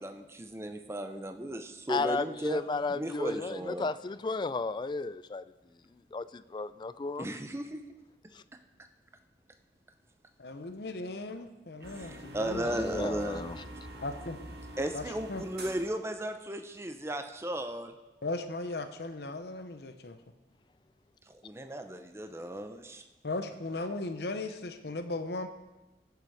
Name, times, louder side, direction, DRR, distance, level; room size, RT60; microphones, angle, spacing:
voice 1, 0.0-2.6 2.9-3.9 7.2-7.8 11.9-13.4 14.8-17.9 21.4-23.0, right 1 dB, 15° right, 7 dB, 0.6 m, -35 dB
voice 2, 1.9-5.4 6.1-7.3 8.3-8.4 12.6-13.6, left 3 dB, 25° left, 15 dB, 0.3 m, -34 dB
voice 3, 10.4-12.7 14.0-14.4 14.9-15.0 15.3-15.4 18.2-20.2 23.2-25.5, left 2 dB, 65° left, 8 dB, 0.8 m, -37 dB
sound 1, 11.8-15.9, right 1 dB, 60° right, 2.0 m, -45 dB
18.0 x 6.9 x 4.8 m, 1.1 s
head